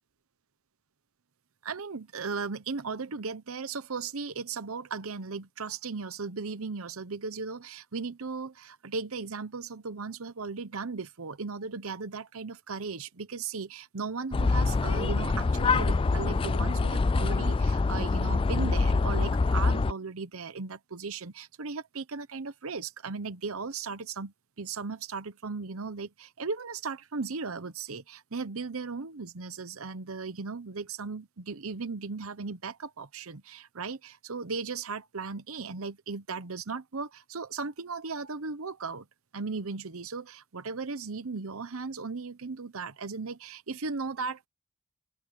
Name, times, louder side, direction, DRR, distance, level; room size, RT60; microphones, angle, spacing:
voice 1, 1.6-39.1 39.3-44.4, right 4 dB, 70° right, 0.9 m, -37 dB
sound 1, 14.3-19.9, left 3 dB, 25° left, 0.3 m, -25 dB
open air
head